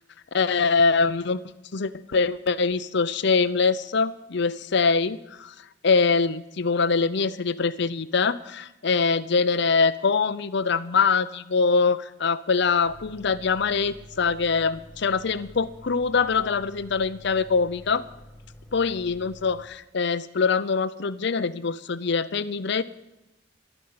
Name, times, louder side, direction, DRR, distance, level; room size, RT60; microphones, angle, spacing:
voice 1, 0.3-1.4 1.7-5.5 5.8-18.0 18.7-22.8, left 4 dB, 60° left, 14 dB, 0.6 m, -23 dB
sound 1, 12.8-19.6, equal, ahead, 1.8 m, -48 dB
12.0 x 9.6 x 8.6 m, 0.93 s
head